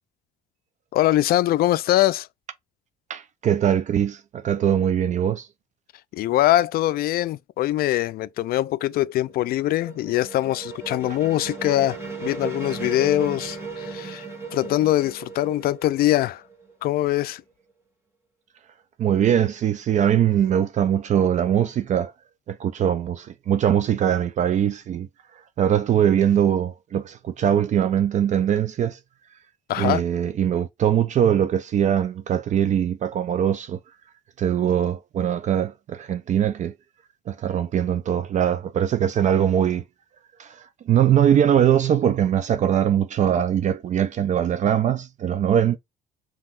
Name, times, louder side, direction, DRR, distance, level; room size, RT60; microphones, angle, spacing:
voice 1, 0.9-2.3 6.1-14.3 14.5-16.4 16.8-17.4 29.7-30.0, left 14 dB, 65° left, 0.4 m, -22 dB
voice 2, 3.1-5.5 19.0-22.1 22.5-29.0 29.8-33.8 34.4-36.7 37.3-39.8 40.4-45.8, right 9 dB, 45° right, 0.4 m, -22 dB
sound 1, 9.1-16.9, right 4 dB, 15° right, 1.6 m, -36 dB
5.6 x 3.0 x 2.4 m
cardioid pair, 110°, 17 cm